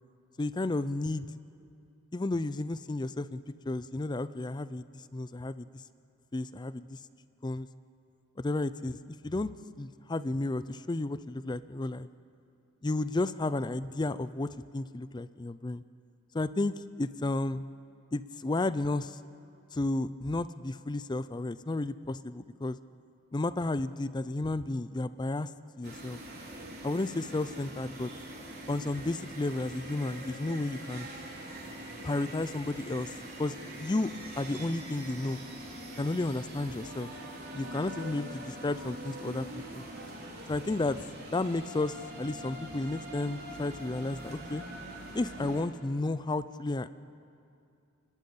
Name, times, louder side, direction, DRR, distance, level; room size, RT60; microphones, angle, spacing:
voice 1, 0.4-1.3 2.1-4.8 5.1-5.8 6.3-7.0 7.4-7.7 8.4-9.5 9.8-12.1 12.8-15.8 16.3-17.6 18.1-19.2 19.7-22.8 23.3-25.5 25.8-26.2 26.8-28.1 28.7-31.1 32.0-33.1 33.4-35.4 36.0-37.1 37.5-39.8 40.5-41.0 41.3-44.6 45.1-46.9, left 2 dB, 20° left, 15 dB, 0.4 m, -32 dB
sound 1, 25.8-45.6, right 1 dB, 50° right, 3.8 m, -43 dB
28.5 x 12.0 x 8.5 m, 2.5 s
head